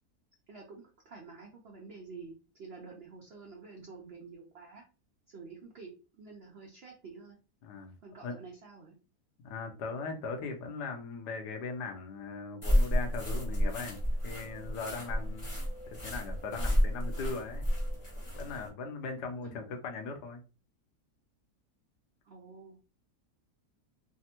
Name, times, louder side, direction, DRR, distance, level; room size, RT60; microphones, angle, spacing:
voice 1, 0.5-4.8 5.3-7.4 8.0-9.0 19.4-19.6 22.2-22.8, right 4 dB, 75° right, 0 dB, 0.5 m, -49 dB
voice 2, 7.6-7.9 8.2-8.4 9.4-14.0 14.2-15.6 15.9-17.7 18.3-20.4, left 4 dB, 85° left, 4 dB, 1.3 m, -39 dB
sound 1, 12.6-18.7, equal, 25° left, 0.8 m, -31 dB
3.3 x 2.1 x 2.8 m, 0.33 s
omnidirectional pair, 1.7 m